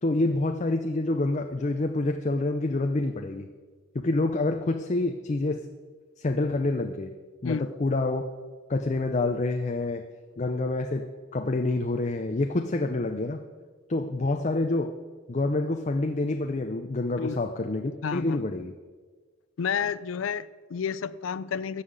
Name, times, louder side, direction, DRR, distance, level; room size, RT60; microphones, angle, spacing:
voice 1, 0.0-3.5 3.9-5.7 6.2-7.1 7.4-8.3 8.7-10.0 10.4-11.1 11.3-13.4 13.9-14.9 15.3-18.7, left 2 dB, 35° left, 6 dB, 0.6 m, -27 dB
voice 2, 18.0-18.4 19.6-21.8, left 6 dB, 85° left, 17 dB, 0.4 m, -30 dB
14.0 x 5.7 x 8.2 m, 1.4 s
head